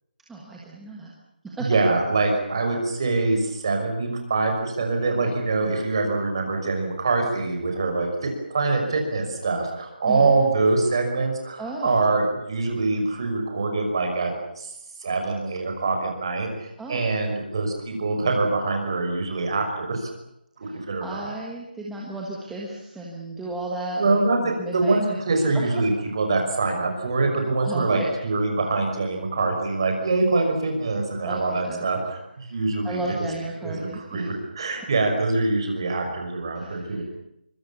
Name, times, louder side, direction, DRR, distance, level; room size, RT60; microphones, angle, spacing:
voice 1, 0.3-1.1 1.4-1.7 10.1-10.3 11.6-12.0 16.8-17.0 20.6-20.7 21.0-24.1 24.4-25.2 25.5-25.6 27.6-28.1 31.2-31.9 32.8-34.3 36.5-37.0, right 2 dB, ahead, -4 dB, 1.5 m, -34 dB
voice 2, 1.6-14.7 15.0-20.1 20.6-21.3 24.0-33.2 33.6-37.0, right 3 dB, 30° right, 3 dB, 5.7 m, -24 dB
25.5 x 25.0 x 7.2 m, 0.80 s
figure-of-eight pair, 180°, 5 cm